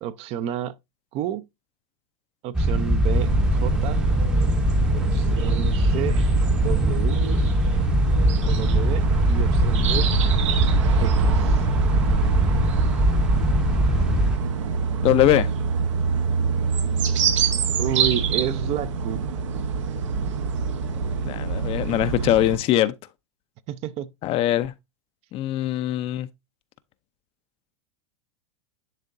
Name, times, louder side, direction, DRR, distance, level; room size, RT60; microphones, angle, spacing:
voice 1, 0.0-0.8 1.1-1.4 2.4-4.0 4.9-6.2 6.6-7.2 8.4-10.1 11.0-11.7 17.8-19.2 23.7-24.1, right 11 dB, 40° right, 0.6 m, -31 dB
sound 1, 2.5-14.4, right 1 dB, 5° right, 0.7 m, -21 dB
sound 2, 3.1-22.6, right 5 dB, 80° right, 1.2 m, -26 dB
voice 2, 15.0-15.5 21.2-22.9 24.2-24.7 25.3-26.3, left 14 dB, 40° left, 0.5 m, -21 dB
10.5 x 3.7 x 2.6 m
hypercardioid pair, 115°, 15 cm